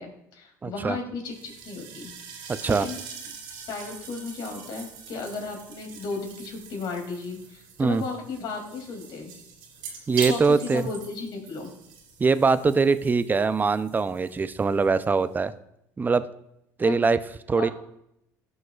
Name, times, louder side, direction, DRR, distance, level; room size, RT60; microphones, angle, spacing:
voice 1, 0.0-2.1 2.4-3.0 3.7-9.3 10.3-11.7 16.8-17.1 17.6-17.7, left 4 dB, 60° left, 3 dB, 2.6 m, -35 dB
voice 2, 0.6-1.0 2.6-2.9 7.8-8.0 10.1-10.9 12.2-15.5 16.0-16.2 16.8-17.2 17.5-17.7, right 4 dB, 20° right, 13 dB, 0.5 m, -22 dB
sound 1, 1.3-15.5, right 6 dB, 70° right, 2.5 m, -42 dB
16.0 x 6.2 x 2.4 m, 0.80 s
supercardioid pair, 85°, 8 cm